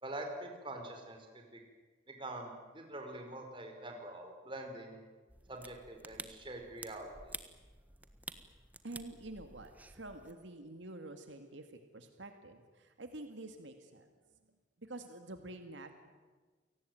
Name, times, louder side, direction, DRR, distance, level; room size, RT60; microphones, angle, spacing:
voice 1, 0.0-1.6 2.1-5.0 5.5-7.3, right 1 dB, 25° right, 3 dB, 4.6 m, -45 dB
sound 1, 5.3-10.3, right 2 dB, 10° right, 1.3 m, -51 dB
voice 2, 8.8-14.1 14.8-15.9, right 2 dB, 75° right, 7 dB, 2.1 m, -48 dB
29.0 x 18.5 x 9.4 m, 1.4 s
head